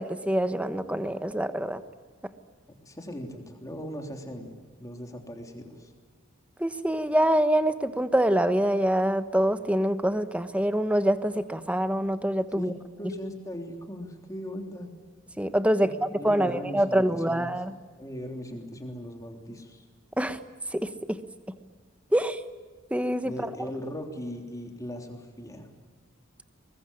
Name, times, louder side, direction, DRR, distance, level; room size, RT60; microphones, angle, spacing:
voice 1, 0.0-1.8 6.6-12.7 15.4-17.8 20.2-20.4 20.7-21.2 22.1-22.4 22.9-23.3, right 1 dB, 5° right, 11 dB, 1.1 m, -25 dB
voice 2, 2.8-4.5 4.8-5.9 12.5-12.7 13.0-14.9 15.8-17.6 18.0-19.8 23.2-25.7, equal, 15° left, 3 dB, 3.4 m, -38 dB
24.0 x 21.5 x 9.9 m, 1.4 s
head